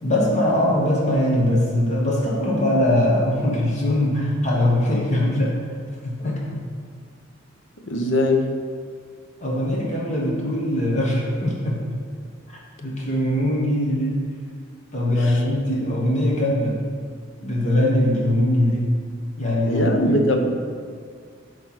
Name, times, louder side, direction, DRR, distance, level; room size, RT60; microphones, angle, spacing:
voice 1, 0.0-5.6 6.0-6.6 9.4-12.0 12.5-14.2 14.9-16.8 17.4-18.9 19.4-20.2, left 1 dB, 35° left, -4 dB, 1.3 m, -21 dB
voice 2, 7.9-8.5 15.1-15.4 19.7-20.6, left 1 dB, 70° left, 4 dB, 0.8 m, -21 dB
8.8 x 3.3 x 5.9 m, 2.1 s
head